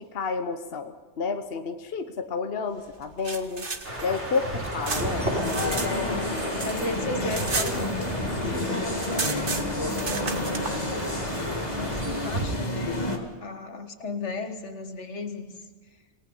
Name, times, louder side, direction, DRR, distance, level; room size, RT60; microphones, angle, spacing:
voice 1, 0.0-3.7 4.0-5.5, left 4 dB, 60° left, 7 dB, 1.2 m, -30 dB
sound 1, 3.0-5.9 6.2-8.4 8.6-8.7 8.9-10.8, right 4 dB, 50° right, 1.6 m, -33 dB
sound 2, 3.8-12.5, right 1 dB, 80° right, 4.9 m, -34 dB
sound 3, 4.9-13.2, left 2 dB, 35° left, 2.4 m, -30 dB
voice 2, 6.0-10.4 11.6-15.6, left 3 dB, 85° left, 7 dB, 1.9 m, -36 dB
27.5 x 18.5 x 5.5 m, 1.3 s
omnidirectional pair, 1.2 m